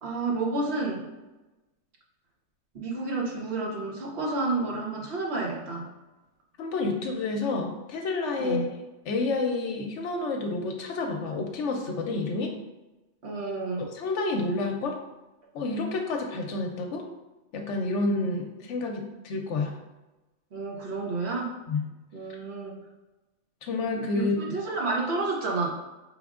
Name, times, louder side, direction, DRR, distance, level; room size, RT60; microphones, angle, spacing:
voice 1, 0.0-1.1 2.7-5.9 8.4-8.7 13.2-13.9 20.5-21.6 22.1-22.8 23.9-25.7, right 3 dB, 60° right, -2 dB, 1.0 m, -30 dB
voice 2, 6.6-8.7 9.1-12.5 13.8-15.0 15.5-17.0 17.5-19.7 21.7-21.8 23.6-24.4, left 3 dB, 70° left, 3 dB, 0.9 m, -29 dB
5.0 x 3.5 x 2.4 m, 1.1 s
omnidirectional pair, 1.3 m